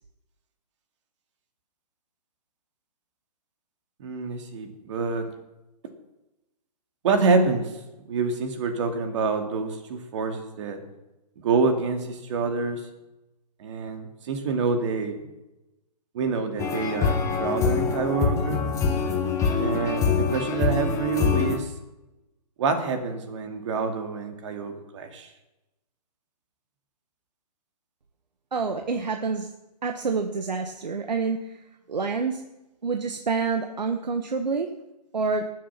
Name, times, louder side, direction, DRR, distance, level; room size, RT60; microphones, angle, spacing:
voice 1, 4.0-5.3 7.0-7.7 8.1-10.8 11.4-12.9 13.6-15.2 16.1-18.6 19.6-21.7 22.6-25.3, right 4 dB, 45° right, 5 dB, 2.6 m, -27 dB
sound 1, 16.6-21.6, left 5 dB, 15° left, 1.6 m, -24 dB
voice 2, 28.5-29.5 29.8-31.6 31.9-32.4 32.8-34.7 35.1-35.5, right 4 dB, 85° right, 5 dB, 1.5 m, -27 dB
20.0 x 7.5 x 5.9 m, 0.97 s
hypercardioid pair, 150°, 21 cm